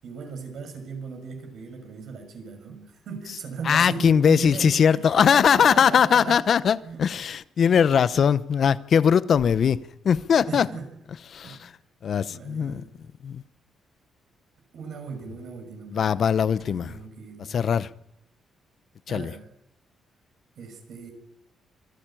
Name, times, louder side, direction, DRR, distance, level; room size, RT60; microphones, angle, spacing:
voice 1, 0.0-6.4 6.8-7.0 7.6-8.2 10.5-10.9 11.4-11.7 12.3-13.0 14.7-16.2 16.6-17.7 19.1-19.5 20.6-21.1, right 5 dB, 70° right, 4 dB, 6.4 m, -38 dB
voice 2, 3.7-9.8 10.0-10.7 11.3-11.7 12.0-12.8 13.2-13.4 15.9-16.9 17.5-17.9 19.1-19.3, left 7 dB, 55° left, 17 dB, 0.9 m, -20 dB
25.5 x 14.5 x 9.1 m, 0.84 s
cardioid pair, 95°, 0 cm